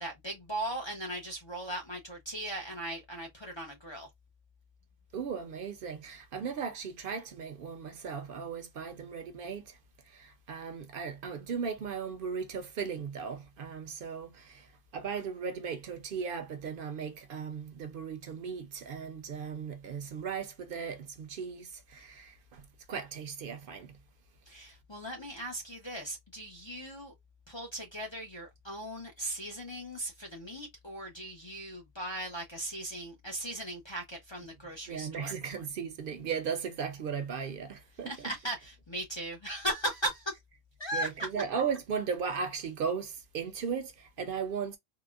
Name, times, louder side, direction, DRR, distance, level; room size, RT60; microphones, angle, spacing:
voice 1, 0.0-4.1 24.5-27.1 27.5-35.3 38.1-40.4 40.8-41.3, right 1 dB, 35° left, 0.5 m, -38 dB
voice 2, 5.1-9.8 10.1-24.0 34.9-38.3 40.9-44.8, right 6 dB, 65° right, 0.7 m, -37 dB
3.7 x 2.1 x 2.2 m
omnidirectional pair, 1.1 m